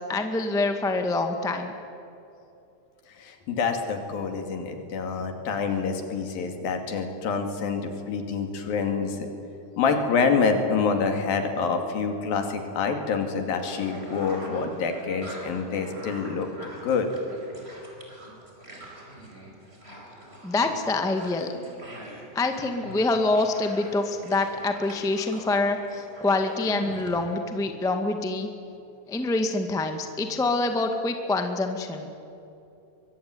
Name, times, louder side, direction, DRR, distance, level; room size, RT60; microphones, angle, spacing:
voice 1, 0.0-1.7 20.4-21.5 22.3-28.5 29.1-32.1, left 2 dB, 5° left, 5 dB, 0.3 m, -26 dB
voice 2, 3.2-9.3 9.8-16.5 16.8-17.1, left 5 dB, 80° left, 5 dB, 4.2 m, -27 dB
sound 1, 13.5-27.4, right 1 dB, 15° right, 4.9 m, -44 dB
24.0 x 23.0 x 9.6 m, 2.8 s
omnidirectional pair, 4.0 m